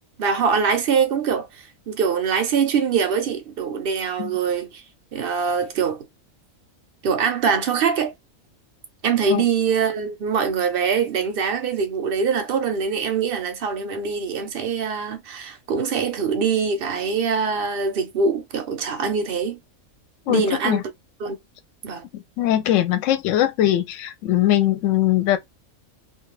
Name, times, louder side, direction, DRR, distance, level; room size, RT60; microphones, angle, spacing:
voice 1, 0.2-1.5 1.9-4.8 5.1-6.0 7.0-8.1 9.0-19.6 20.3-20.8 21.2-21.4 21.8-22.0, right 6 dB, 55° right, 0.7 m, -23 dB
voice 2, 20.3-20.8 22.1-25.4, left 13 dB, 70° left, 0.9 m, -21 dB
2.4 x 2.3 x 3.0 m
omnidirectional pair, 1.4 m